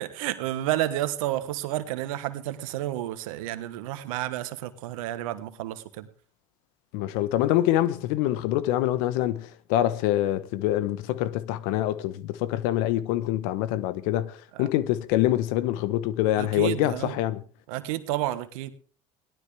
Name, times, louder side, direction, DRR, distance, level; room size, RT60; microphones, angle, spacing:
voice 1, 0.0-6.1 14.5-14.7 16.4-17.2 17.7-18.7, right 14 dB, 85° right, 1.3 m, -31 dB
voice 2, 6.9-17.4, left 13 dB, 75° left, 1.0 m, -25 dB
17.5 x 12.0 x 3.4 m
hypercardioid pair, 75°, 17 cm